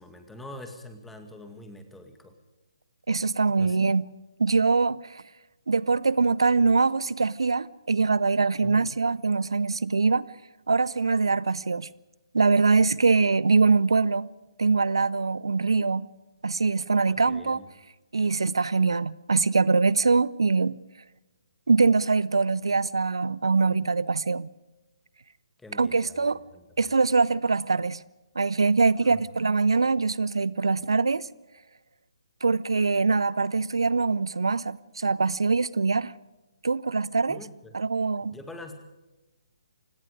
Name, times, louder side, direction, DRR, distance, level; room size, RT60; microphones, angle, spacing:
voice 1, 0.0-2.3 3.6-3.8 8.6-8.9 17.1-17.6 25.6-26.9 29.0-29.2 37.3-37.8 38.3-38.8, left 1 dB, 5° left, 2.2 m, -45 dB
voice 2, 3.1-4.0 4.4-5.2 5.7-10.3 10.7-11.9 12.3-14.3 14.6-16.1 16.4-17.6 18.1-20.8 21.7-24.5 25.8-26.4 26.8-28.0 28.3-31.3 32.4-36.1 36.6-37.4 37.7-38.4, right 4 dB, 65° right, 0.7 m, -23 dB
29.5 x 17.5 x 5.0 m
figure-of-eight pair, 135°, 3 cm